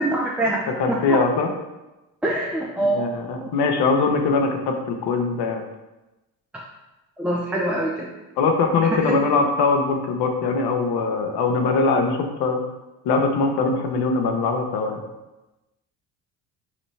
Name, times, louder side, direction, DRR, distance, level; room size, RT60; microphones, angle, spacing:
voice 1, 0.0-1.2 2.2-3.1 3.4-3.5 6.5-6.6 7.2-8.1 9.0-9.2, right 1 dB, 5° right, -3 dB, 0.5 m, -24 dB
voice 2, 0.8-1.5 2.9-5.6 8.4-12.6 13.0-15.0, left 4 dB, 60° left, 4 dB, 0.8 m, -22 dB
5.0 x 3.2 x 3.2 m, 1.0 s
hypercardioid pair, 55°, 47 cm